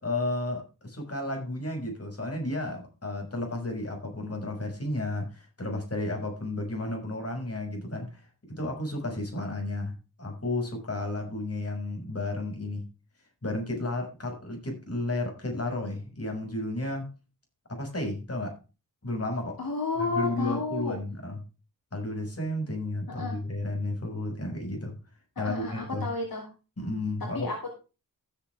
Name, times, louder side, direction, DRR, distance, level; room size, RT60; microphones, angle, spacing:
voice 1, 0.0-8.2 8.5-9.9 10.2-12.8 13.4-17.1 17.7-18.6 19.0-19.6 20.1-21.4 21.9-24.9 25.4-26.0 26.8-27.5, left 2 dB, 40° left, 1 dB, 6.4 m, -32 dB
voice 2, 19.6-21.0 23.1-23.4 25.4-26.5 27.3-27.7, left 3 dB, 70° left, 0 dB, 3.1 m, -31 dB
15.5 x 7.3 x 3.6 m, 0.31 s
wide cardioid pair, 65°, 36 cm